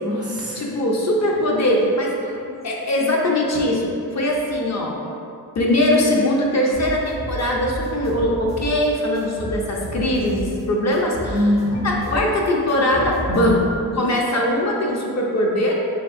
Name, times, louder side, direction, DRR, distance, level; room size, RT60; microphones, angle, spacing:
voice 1, 0.0-0.7 2.2-2.5 11.3-12.2 14.0-14.2, left 1 dB, 5° right, -6 dB, 0.4 m, -24 dB
voice 2, 0.6-2.2 2.6-5.0 5.6-11.3 11.8-13.7 13.9-15.7, left 1 dB, 45° left, -2 dB, 0.5 m, -21 dB
sound 1, 6.7-8.9 9.1-10.6 10.9-13.9, equal, 85° left, 1.3 m, -32 dB
3.4 x 2.3 x 2.5 m, 2.5 s
cardioid pair, 70°, 37 cm